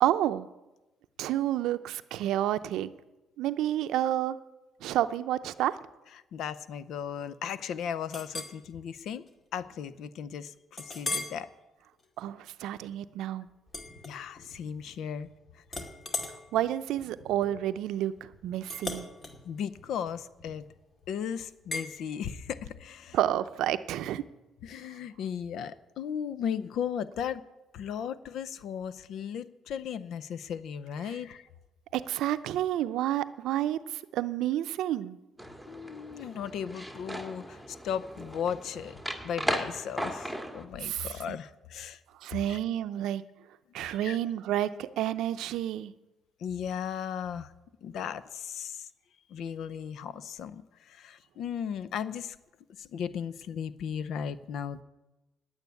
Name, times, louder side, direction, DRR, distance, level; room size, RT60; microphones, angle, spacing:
voice 1, 0.0-0.5 1.2-2.9 3.4-4.4 4.8-5.8 12.2-13.5 16.5-19.0 23.1-24.2 31.9-35.2 40.8-41.4 42.2-43.2 43.7-45.9, right 12 dB, 80° right, 12 dB, 0.6 m, -30 dB
voice 2, 6.1-9.3 9.5-11.5 14.0-15.3 15.5-15.8 19.4-20.7 21.1-23.2 24.6-27.4 27.7-31.5 35.7-39.0 39.2-42.0 42.5-42.6 43.8-44.2 46.4-47.5 47.8-48.9 49.3-52.4 52.8-54.8, left 8 dB, 70° left, 16 dB, 0.6 m, -36 dB
Chink clink, 8.1-8.6 9.1-9.3 9.7-9.8 10.8-11.4 11.9-12.2 13.7-14.6 14.9-15.3 15.7-20.8 21.7-21.9, left 2 dB, 40° left, 2.2 m, -39 dB
sound 1, 35.4-40.6, equal, 5° left, 1.7 m, -37 dB
9.6 x 9.1 x 9.4 m, 1.0 s
cardioid pair, 85°, 0 cm